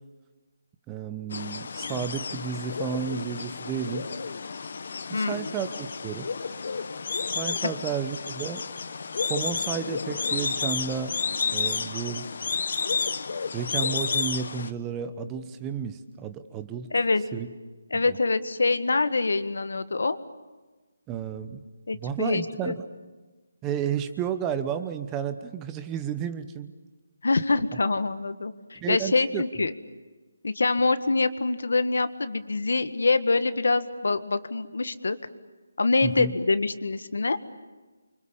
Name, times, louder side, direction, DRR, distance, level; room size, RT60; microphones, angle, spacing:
voice 1, 0.9-4.1 5.1-6.3 7.3-8.6 9.2-11.2 11.5-12.3 13.5-16.9 17.3-17.5 17.9-18.2 21.1-21.6 22.0-22.8 23.6-26.7 28.7-29.7 36.0-36.3, right 7 dB, 15° right, 11 dB, 1.0 m, -32 dB
sound 1, 1.3-14.7, left 5 dB, 55° left, 1.2 m, -31 dB
voice 2, 5.1-5.5 16.9-17.2 17.9-20.2 21.9-22.8 27.2-29.7 30.4-35.2 35.8-37.4, left 3 dB, 80° left, 12 dB, 1.7 m, -25 dB
29.0 x 25.0 x 7.2 m, 1.2 s
hypercardioid pair, 165°, 0 cm